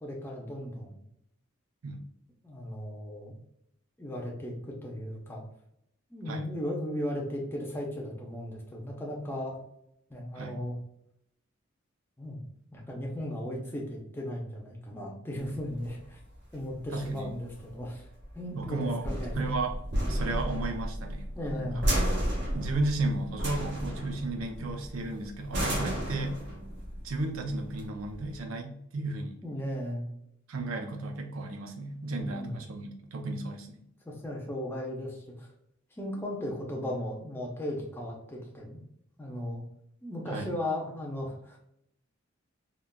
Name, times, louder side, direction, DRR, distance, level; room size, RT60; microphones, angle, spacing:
voice 1, 0.0-1.0 2.4-3.3 4.0-5.4 6.1-9.6 10.1-10.8 12.2-12.4 12.7-16.2 16.5-18.1 18.3-19.5 21.4-21.9 29.4-30.1 32.3-32.6 34.0-35.5 36.0-38.8 39.2-39.6 40.0-41.6, left 1 dB, 10° left, -2 dB, 0.6 m, -36 dB
sound 1, 15.4-28.4, equal, 55° right, 0.9 m, -33 dB
voice 2, 16.9-17.3 18.5-19.1 19.3-19.8 20.1-21.3 21.5-21.7 22.5-26.4 27.0-29.4 30.5-33.8 40.3-40.5, right 2 dB, 90° right, 4 dB, 0.5 m, -34 dB
3.7 x 2.3 x 2.2 m, 0.75 s
head